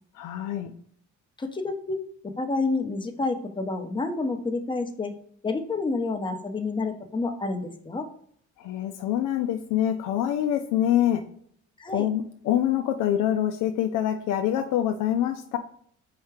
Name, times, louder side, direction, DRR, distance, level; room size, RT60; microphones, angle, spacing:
voice 1, 0.1-0.7 8.6-11.2 11.9-15.6, left 11 dB, 90° left, 5 dB, 0.5 m, -25 dB
voice 2, 1.4-5.1 5.4-8.1 11.8-12.1, left 3 dB, 15° left, 4 dB, 0.7 m, -29 dB
4.7 x 2.1 x 4.6 m, 0.62 s
cardioid pair, 90°, 30 cm